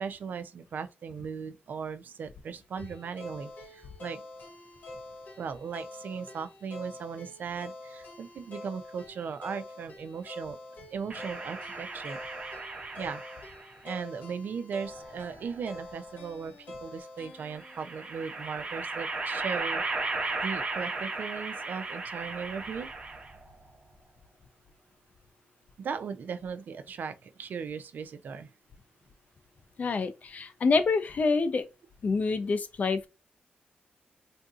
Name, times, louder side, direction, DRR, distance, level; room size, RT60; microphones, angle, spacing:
voice 1, 0.0-4.2 5.4-10.6 10.9-12.2 13.0-13.2 13.8-22.9 25.8-28.5, right 6 dB, 65° right, 0.4 m, -38 dB
sound 1, 2.8-18.9, left 2 dB, 65° left, 1.2 m, -47 dB
sound 2, 11.1-13.7 14.9-15.9 17.5-23.5, right 3 dB, 35° right, 1.1 m, -36 dB
voice 2, 29.8-31.7 32.0-33.1, left 4 dB, 50° left, 0.5 m, -27 dB
3.7 x 2.6 x 2.3 m
cardioid pair, 105°, 3 cm